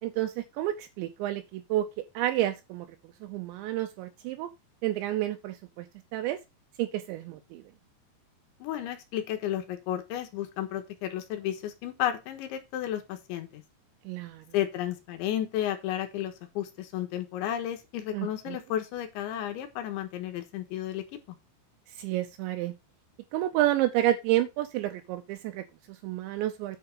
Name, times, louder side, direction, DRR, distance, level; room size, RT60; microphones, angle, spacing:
voice 1, 0.0-1.9 2.1-4.5 4.8-5.9 6.1-6.4 6.8-7.6 14.1-14.4 18.1-18.6 21.9-22.7 23.3-26.8, right 14 dB, 80° right, 3.0 m, -30 dB
voice 2, 8.6-13.6 14.5-21.0, left 11 dB, 80° left, 3.7 m, -32 dB
9.9 x 4.8 x 5.5 m
omnidirectional pair, 5.4 m